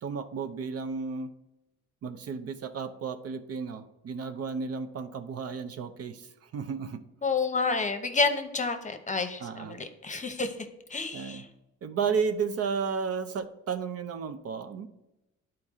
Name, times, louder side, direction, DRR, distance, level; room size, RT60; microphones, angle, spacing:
voice 1, 0.0-1.3 2.0-7.0 9.4-9.8 11.1-11.5 11.8-14.9, right 5 dB, 55° right, 9 dB, 0.6 m, -33 dB
voice 2, 7.2-11.4, left 4 dB, 25° left, 8 dB, 0.8 m, -30 dB
10.5 x 4.5 x 3.6 m, 0.95 s
cardioid pair, 90°, 30 cm